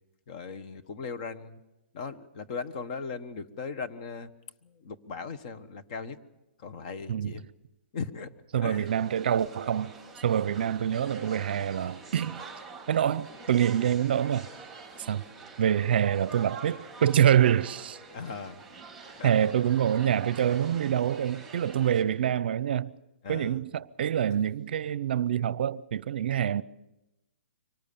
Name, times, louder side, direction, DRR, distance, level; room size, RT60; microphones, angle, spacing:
voice 1, 0.3-1.6 1.9-4.3 4.6-6.2 6.6-7.4 7.9-8.3 8.6-8.9 18.1-18.6 19.2-19.3 23.2-23.6, left 5 dB, 40° left, 1.3 m, -38 dB
voice 2, 8.5-9.9 10.2-12.4 12.9-14.5 15.1-15.2 15.6-18.0 19.2-22.9 23.3-26.6, right 9 dB, 55° right, 0.7 m, -26 dB
sound 1, 8.8-22.0, right 4 dB, ahead, 4.3 m, -46 dB
24.5 x 18.5 x 7.0 m
hypercardioid pair, 160°, 7 cm